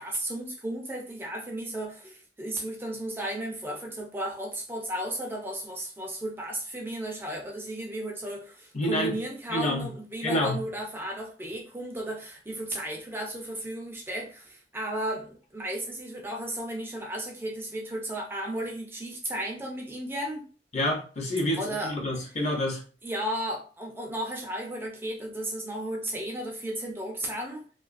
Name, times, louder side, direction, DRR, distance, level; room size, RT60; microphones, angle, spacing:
voice 1, 0.0-20.5 21.6-21.9 23.0-27.6, right 1 dB, 10° right, 0.4 m, -34 dB
voice 2, 8.7-9.1 9.5-9.9 10.2-10.6 20.7-22.8, left 1 dB, 40° left, 0.6 m, -28 dB
2.3 x 2.2 x 2.4 m
head